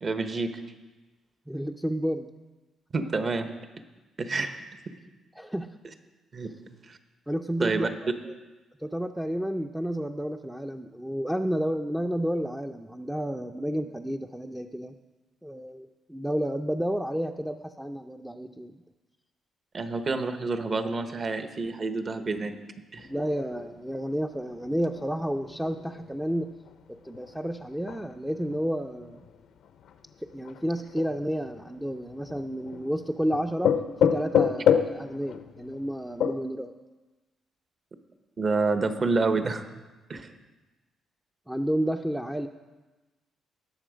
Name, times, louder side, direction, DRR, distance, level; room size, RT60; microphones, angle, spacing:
voice 1, 0.0-0.5 2.9-3.5 4.2-4.9 6.3-6.5 6.9-7.0 7.6-7.9 19.7-22.6 22.9-23.1 38.4-39.6 40.1-40.3, right 3 dB, 40° right, 8 dB, 1.1 m, -28 dB
voice 2, 1.5-2.3 5.4-5.7 7.3-8.3 8.8-14.9 15.4-18.8 23.0-26.5 27.0-29.2 30.3-33.7 34.0-36.7 41.5-42.5, equal, 5° right, 2 dB, 0.6 m, -31 dB
sound 1, 23.0-36.3, left 8 dB, 75° left, 0.7 m, -30 dB
19.0 x 7.0 x 5.1 m, 1.2 s
cardioid pair, 90°, 0 cm